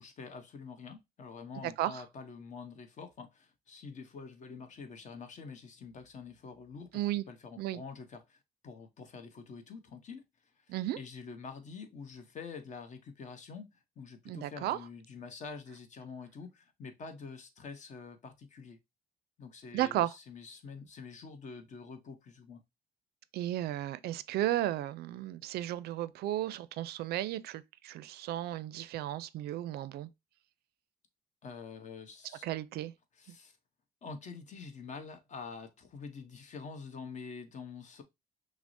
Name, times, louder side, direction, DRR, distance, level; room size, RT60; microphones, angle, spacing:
voice 1, 0.0-10.2 10.6-10.7 10.9-18.8 19.4-22.6 31.4-32.4 33.2-33.6 34.0-38.0, left 5 dB, 45° left, 0.9 m, -46 dB
voice 2, 1.6-2.0 6.9-7.2 7.6-7.8 10.7-11.0 14.3-14.8 19.7-20.1 23.3-30.1 32.4-32.9 33.3-33.4, right 13 dB, 70° right, 0.4 m, -34 dB
5.9 x 2.0 x 2.6 m
cardioid pair, 110°, 17 cm